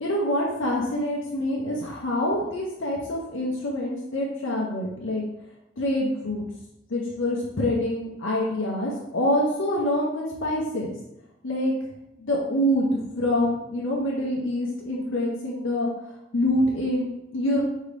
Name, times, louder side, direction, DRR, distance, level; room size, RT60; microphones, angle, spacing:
voice 1, 0.0-5.2 5.8-6.5 6.9-10.9 11.4-11.7 12.2-15.9 16.3-17.6, left 1 dB, 65° left, -3 dB, 0.7 m, -26 dB
5.0 x 2.8 x 3.3 m, 0.88 s
head